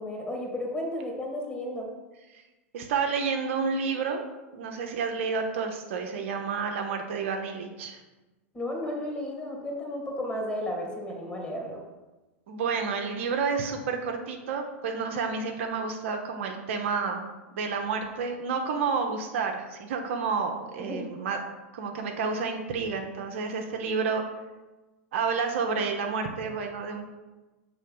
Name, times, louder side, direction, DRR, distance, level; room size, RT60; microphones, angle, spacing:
voice 1, 0.0-1.9 8.5-11.8 20.8-21.1, left 1 dB, 15° left, 0 dB, 2.0 m, -33 dB
voice 2, 2.7-4.2 4.5-8.0 12.5-17.2 17.5-21.4 21.7-24.2 25.1-27.1, right 5 dB, 60° right, 3 dB, 0.8 m, -30 dB
6.4 x 3.4 x 5.4 m, 1.1 s
hypercardioid pair, 95°, 7 cm